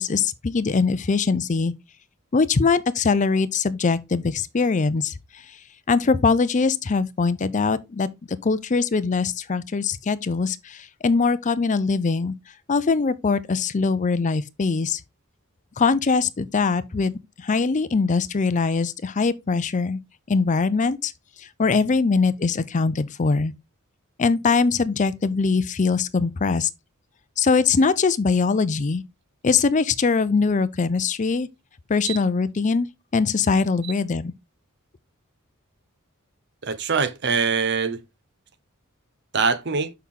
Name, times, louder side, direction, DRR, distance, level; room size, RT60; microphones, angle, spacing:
voice 1, 0.0-1.7 2.3-5.1 5.9-12.3 12.7-15.0 15.8-17.1 17.4-20.0 20.3-21.1 21.6-23.5 24.2-26.7 27.4-29.0 29.4-31.5 31.9-32.9 33.1-34.3, left 4 dB, 35° left, 0.5 m, -22 dB
voice 2, 36.6-38.0 39.3-39.9, right 5 dB, 55° right, 0.8 m, -23 dB
6.5 x 5.6 x 3.7 m
head